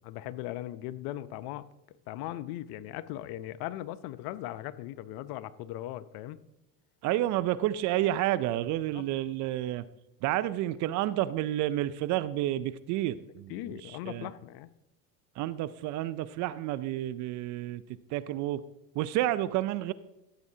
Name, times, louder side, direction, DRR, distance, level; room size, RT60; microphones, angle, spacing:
voice 1, 0.0-1.7 2.1-6.4 8.9-9.1 13.5-14.7, left 14 dB, 50° left, 16 dB, 0.6 m, -38 dB
voice 2, 7.0-9.8 10.2-14.3 15.4-17.8 18.1-18.6 19.0-19.9, right 14 dB, 40° right, 15 dB, 0.4 m, -30 dB
14.5 x 8.2 x 2.7 m, 0.94 s
hypercardioid pair, 95°, 48 cm